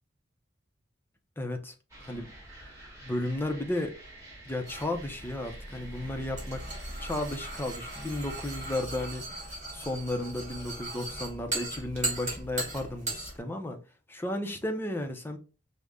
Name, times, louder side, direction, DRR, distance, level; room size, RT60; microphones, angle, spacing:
voice 1, 1.4-1.7 2.1-2.3 3.0-3.9 4.5-6.6 7.0-13.8 14.1-15.4, left 1 dB, 10° left, 0.6 m, -34 dB
sound 1, 1.9-8.8, right 1 dB, 15° right, 1.6 m, -49 dB
sound 2, 4.7-13.4, right 2 dB, 40° right, 1.9 m, -38 dB
5.1 x 2.1 x 3.5 m
head